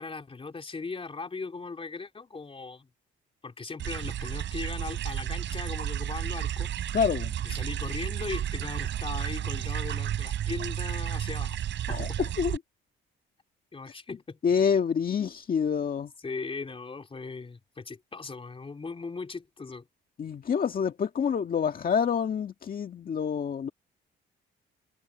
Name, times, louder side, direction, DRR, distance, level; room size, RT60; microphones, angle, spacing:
voice 1, 0.0-2.9 3.4-6.7 7.4-11.6 11.9-12.2 13.7-14.4 16.2-19.9, left 4 dB, 30° left, 3.5 m, -38 dB
sound 1, 3.8-12.6, right 11 dB, 70° right, 3.1 m, -32 dB
voice 2, 6.9-7.3 11.9-12.6 14.4-16.1 20.2-23.7, left 7 dB, 45° left, 1.8 m, -27 dB
cardioid pair, 90°, 20 cm